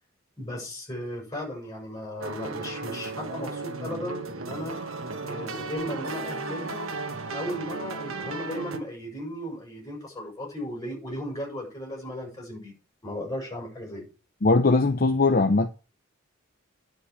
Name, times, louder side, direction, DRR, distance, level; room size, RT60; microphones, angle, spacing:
voice 1, 0.4-4.8 5.2-6.9 7.3-12.7 13.0-14.1, equal, 15° left, 6.5 m, -36 dB
sound 1, 2.2-8.8, right 3 dB, 80° right, 1.3 m, -35 dB
voice 2, 14.4-15.7, left 3 dB, 45° left, 0.8 m, -20 dB
10.5 x 5.2 x 8.3 m
head